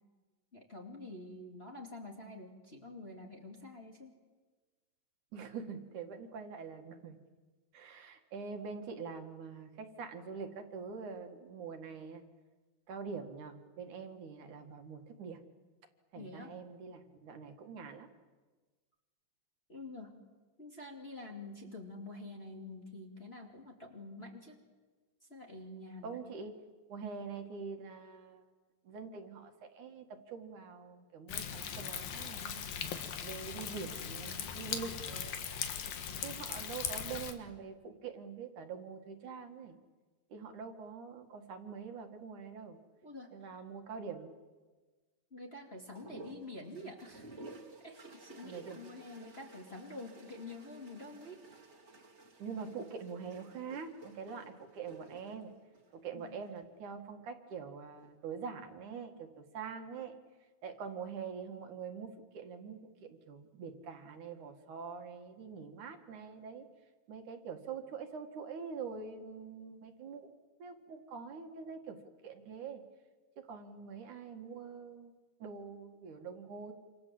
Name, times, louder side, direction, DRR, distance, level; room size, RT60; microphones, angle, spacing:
voice 1, 0.5-4.1 16.1-16.5 19.7-20.2 20.6-24.6 25.3-26.2 43.0-43.6 45.3-47.3 47.8-51.4 56.1-56.4, left 2 dB, 20° left, 0 dB, 2.5 m, -47 dB
voice 2, 5.3-7.2 7.7-12.2 12.9-15.4 16.1-18.1 26.0-26.5 26.9-28.5 28.8-32.6 33.2-35.7 36.2-39.8 40.3-42.8 43.3-44.3 48.4-48.8 52.4-55.5 55.9-60.1 60.6-62.1 62.3-66.7 67.1-70.3 70.6-72.0 72.2-72.8 73.4-75.1 75.4-76.7, right 5 dB, 65° right, 5 dB, 3.2 m, -44 dB
Thunder, 31.3-37.3, left 8 dB, 85° left, 3.5 m, -39 dB
sound 1, 45.9-56.6 57.8-58.4, right 2 dB, 20° right, 2.4 m, -54 dB
27.5 x 27.5 x 7.8 m, 1.3 s
omnidirectional pair, 3.9 m